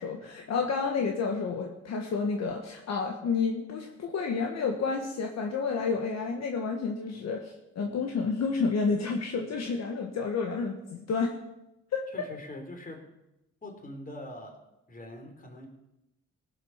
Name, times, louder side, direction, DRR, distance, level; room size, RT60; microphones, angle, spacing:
voice 1, 0.0-11.4 11.9-12.1, left 5 dB, 60° left, 2 dB, 1.5 m, -30 dB
voice 2, 12.1-13.1 13.6-14.6 14.9-15.7, left 1 dB, 30° left, 3 dB, 3.5 m, -43 dB
17.5 x 7.7 x 5.8 m, 0.90 s
cardioid pair, 90°, 30 cm